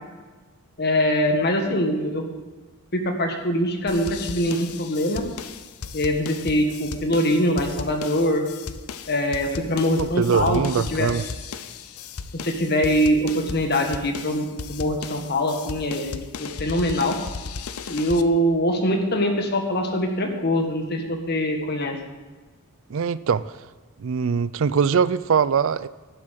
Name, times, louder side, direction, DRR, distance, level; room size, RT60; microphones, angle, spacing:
voice 1, 0.8-2.3 2.9-5.2 5.9-8.4 9.1-10.6 10.9-11.1 12.3-17.2 17.9-22.0, equal, 50° left, 1.8 m, -23 dB
sound 1, 3.9-18.2, left 5 dB, 85° left, 0.7 m, -36 dB
voice 2, 10.0-11.2 22.9-23.4 24.0-25.9, right 6 dB, 65° right, 0.4 m, -22 dB
11.5 x 7.7 x 8.2 m
head